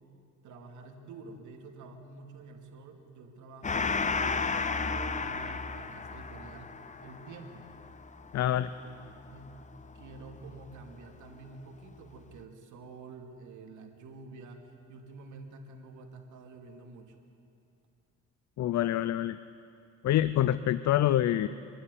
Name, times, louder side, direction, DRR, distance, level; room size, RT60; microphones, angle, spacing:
voice 1, 0.4-6.7 7.0-7.7 8.8-9.0 9.3-9.6 9.9-14.6 14.9-17.2, right 3 dB, 75° right, 3 dB, 2.7 m, -48 dB
Gong, 3.6-10.6, left 4 dB, 25° left, 0.8 m, -34 dB
voice 2, 8.3-8.7 18.6-19.4 20.0-21.5, left 12 dB, 65° left, 15 dB, 0.6 m, -26 dB
25.0 x 12.5 x 9.8 m, 2.6 s
cardioid pair, 90°, 30 cm